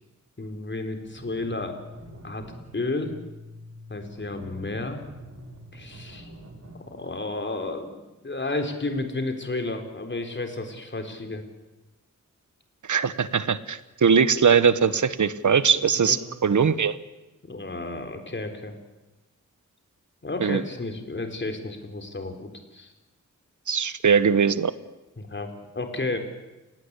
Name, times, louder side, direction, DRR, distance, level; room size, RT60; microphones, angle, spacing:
voice 1, 0.4-1.8 2.2-2.5 2.7-3.2 3.9-5.0 5.7-6.3 6.7-11.4 16.0-16.2 17.4-18.7 20.2-22.9 25.2-26.2, left 2 dB, 40° left, 5 dB, 4.1 m, -32 dB
sound 1, 1.0-6.8, equal, 55° right, 6.3 m, -45 dB
voice 2, 12.9-17.0 20.4-20.6 23.7-24.7, right 6 dB, 75° right, 15 dB, 1.2 m, -21 dB
30.0 x 18.0 x 8.4 m, 1.1 s
wide cardioid pair, 95°, 30 cm